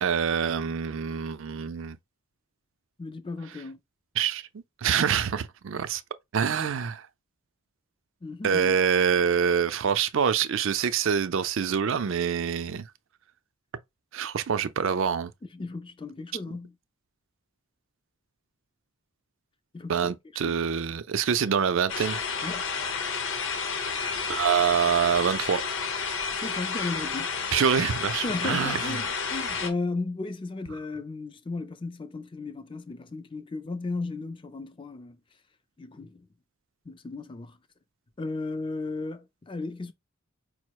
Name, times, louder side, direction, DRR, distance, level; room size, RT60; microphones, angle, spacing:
voice 1, 0.0-2.0 4.2-4.4 4.8-6.0 6.3-7.1 8.4-12.9 14.1-15.3 19.9-22.2 24.3-25.6 27.5-29.0, right 7 dB, 55° right, 0.4 m, -25 dB
voice 2, 3.0-3.8 8.2-8.8 15.5-16.8 19.7-20.1 20.4-20.6 22.4-22.7 26.3-27.3 27.8-27.9 28.2-35.2 35.8-36.3 36.9-37.6 38.2-39.9, left 3 dB, 20° left, 0.4 m, -35 dB
sound 1, 21.9-29.7, left 5 dB, 55° left, 0.8 m, -31 dB
4.7 x 2.0 x 4.6 m
head